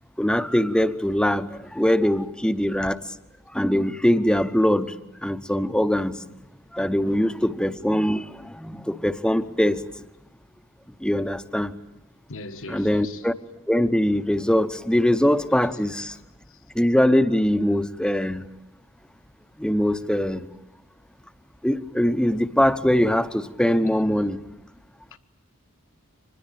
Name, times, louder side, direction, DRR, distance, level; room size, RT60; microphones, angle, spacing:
voice 1, 0.2-3.0 3.5-4.9 5.2-6.2 6.7-9.8 11.0-11.7 12.7-13.3 13.7-16.1 16.8-18.4 19.6-20.5 21.6-24.4, equal, 5° left, 0.8 m, -22 dB
voice 2, 12.3-13.3 16.1-16.2 16.5-16.6 25.1-25.2, left 3 dB, 65° left, 1.4 m, -40 dB
25.0 x 20.5 x 9.0 m
head